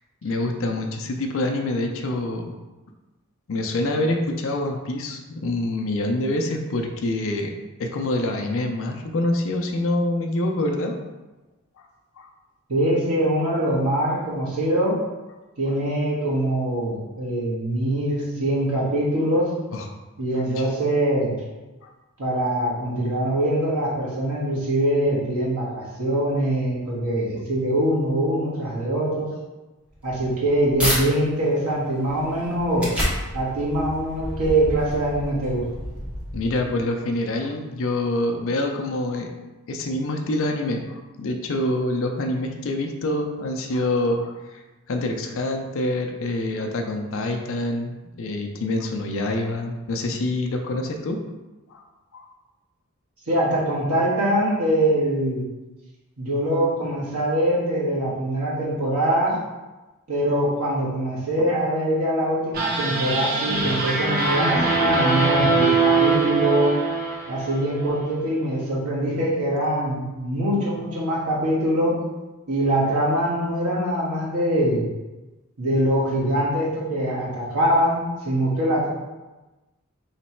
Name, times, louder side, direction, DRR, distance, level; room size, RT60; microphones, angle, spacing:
voice 1, 0.2-2.6 3.5-7.5 7.8-11.0 11.8-11.9 12.2-12.3 19.7-19.9 20.6-20.7 21.8-21.9 36.3-39.3 39.7-44.6 44.9-51.2 51.7-51.8 52.1-52.3, left 1 dB, 65° left, 3 dB, 0.5 m, -26 dB
voice 2, 12.7-15.0 15.6-19.5 20.2-21.3 22.2-29.3 30.0-32.9 33.3-35.6 53.3-55.5 56.2-59.4 60.1-66.8 67.3-72.0 72.5-74.9 75.6-78.9, right 1 dB, 85° right, -5 dB, 1.4 m, -23 dB
sound 1, 29.9-31.0 31.5-36.8, equal, 5° right, 1.2 m, -30 dB
sound 2, 62.5-67.8, right 3 dB, 45° right, 0.7 m, -22 dB
3.3 x 3.1 x 4.3 m, 1.1 s
head